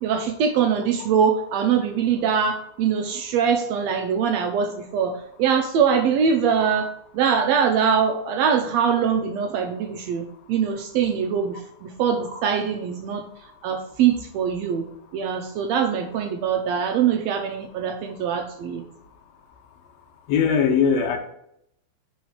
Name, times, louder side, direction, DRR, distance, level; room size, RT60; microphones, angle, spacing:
voice 1, 0.0-6.9 7.1-11.6 11.8-13.2 13.6-14.8 15.1-18.8, right 7 dB, 80° right, 5 dB, 1.6 m, -23 dB
voice 2, 20.3-21.2, left 6 dB, 75° left, 4 dB, 1.8 m, -19 dB
4.7 x 3.9 x 5.7 m, 0.75 s
omnidirectional pair, 3.4 m